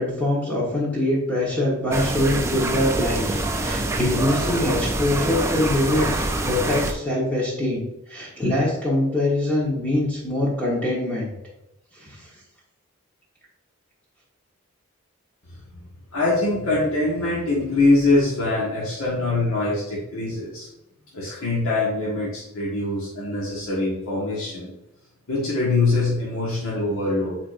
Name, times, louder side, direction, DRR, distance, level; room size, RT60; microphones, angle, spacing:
voice 1, 0.0-11.3 12.0-12.3, left 1 dB, 5° left, -6 dB, 1.3 m, -24 dB
sound 1, 1.9-6.9, right 2 dB, 10° right, 0.4 m, -25 dB
voice 2, 16.1-20.7 21.1-24.7 25.3-27.4, left 2 dB, 75° left, -6 dB, 1.6 m, -23 dB
8.4 x 4.3 x 2.6 m, 0.88 s
head